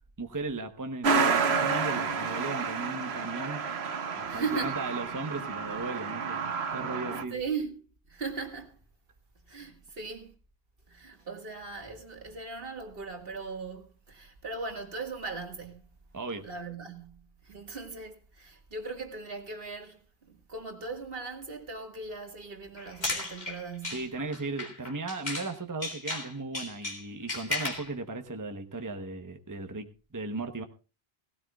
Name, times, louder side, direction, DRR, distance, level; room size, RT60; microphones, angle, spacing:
voice 1, 0.2-3.6 4.2-7.4 16.1-16.5 23.8-30.6, right 3 dB, 20° right, 1.0 m, -36 dB
Truck, 1.0-7.2, right 5 dB, 85° right, 1.3 m, -30 dB
voice 2, 4.3-4.8 7.3-7.7 8.1-8.8 9.5-10.3 10.9-15.8 16.4-20.0 20.3-24.1, right 4 dB, 65° right, 2.1 m, -38 dB
sound 1, 22.8-25.5 25.8-27.9, left 2 dB, 45° left, 2.6 m, -35 dB
17.5 x 16.5 x 2.4 m
omnidirectional pair, 1.0 m